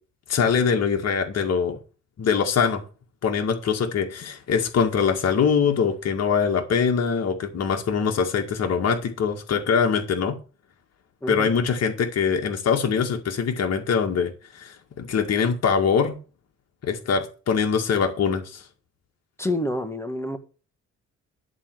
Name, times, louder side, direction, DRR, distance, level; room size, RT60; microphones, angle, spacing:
voice 1, 0.3-1.8 2.2-2.8 3.2-10.4 11.3-16.2 16.8-18.6, left 6 dB, 55° left, 2.1 m, -23 dB
voice 2, 11.2-11.5 19.4-20.4, left 1 dB, 10° left, 1.8 m, -28 dB
11.0 x 4.4 x 7.9 m
cardioid pair, 90°, 30 cm